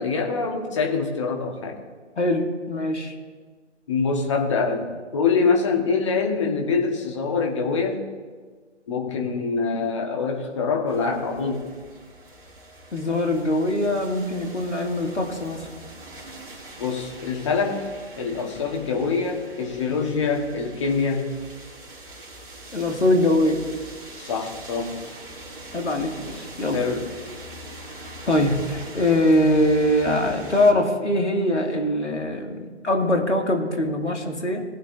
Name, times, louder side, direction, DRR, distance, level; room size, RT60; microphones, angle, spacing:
voice 1, 0.0-1.8 3.9-8.0 8.9-11.6 16.8-17.9 18.2-21.3 24.2-25.0 26.7-27.1, left 4 dB, 25° left, 2 dB, 1.4 m, -25 dB
voice 2, 2.2-3.1 12.9-15.7 22.7-23.6 25.7-26.8 28.3-34.6, left 1 dB, 70° left, 2 dB, 2.4 m, -22 dB
sound 1, 10.9-30.7, right 1 dB, 45° right, 2.8 m, -42 dB
19.5 x 9.4 x 2.7 m, 1.4 s
figure-of-eight pair, 145°, 36 cm